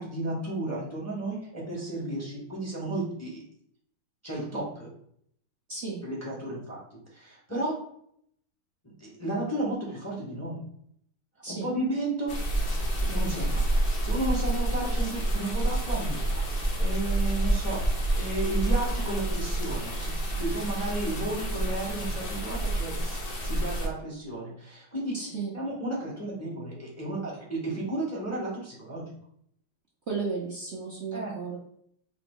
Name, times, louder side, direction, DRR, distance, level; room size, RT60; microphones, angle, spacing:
voice 1, 0.0-3.4 4.2-4.9 6.0-7.8 9.0-10.6 11.4-12.4 13.0-25.1 25.5-29.1 31.1-31.3, right 2 dB, 10° left, -4 dB, 0.9 m, -33 dB
voice 2, 5.7-6.0 11.4-11.7 25.1-25.5 30.1-31.6, right 4 dB, 85° right, -4 dB, 0.6 m, -34 dB
sound 1, 12.3-23.9, right 1 dB, 60° left, 0.6 m, -28 dB
4.7 x 2.9 x 3.7 m, 0.69 s
omnidirectional pair, 2.4 m